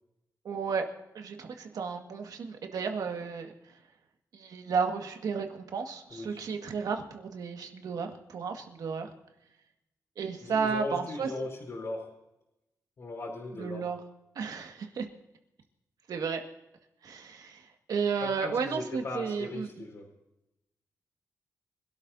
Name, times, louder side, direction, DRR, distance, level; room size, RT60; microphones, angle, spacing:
voice 1, 0.4-0.9 1.1-3.5 4.3-9.1 10.2-11.4 11.8-12.0 13.5-14.0 14.4-15.1 16.1-16.4 17.0-19.7, right 5 dB, 80° right, 4 dB, 1.9 m, -33 dB
voice 2, 10.4-12.1 13.0-13.8 18.2-20.1, left 2 dB, 50° left, -4 dB, 3.7 m, -38 dB
25.5 x 12.5 x 2.8 m, 0.91 s
wide cardioid pair, 120°, 6 cm